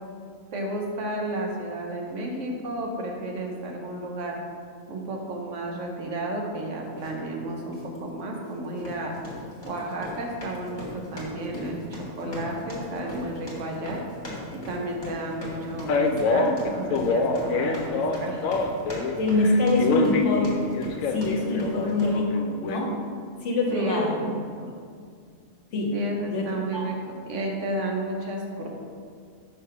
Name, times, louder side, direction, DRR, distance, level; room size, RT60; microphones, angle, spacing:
voice 1, 0.5-4.4 4.9-9.2 9.6-14.0 14.5-18.5 21.6-21.7 23.7-24.7 25.9-27.0 27.3-28.7, right 1 dB, 70° right, 0 dB, 1.1 m, -32 dB
sound 1, 7.0-7.2 7.7-8.0 8.7-22.2, left 1 dB, 20° left, 1.3 m, -39 dB
Male speech man speaking, 15.9-19.1 19.4-22.8, left 4 dB, 90° left, 1.0 m, -26 dB
voice 2, 19.1-20.6 21.1-22.2 22.6-23.0 23.4-24.2 25.7-26.8, left 2 dB, 65° left, 0 dB, 1.1 m, -24 dB
5.6 x 3.3 x 5.6 m, 2.2 s
omnidirectional pair, 1.4 m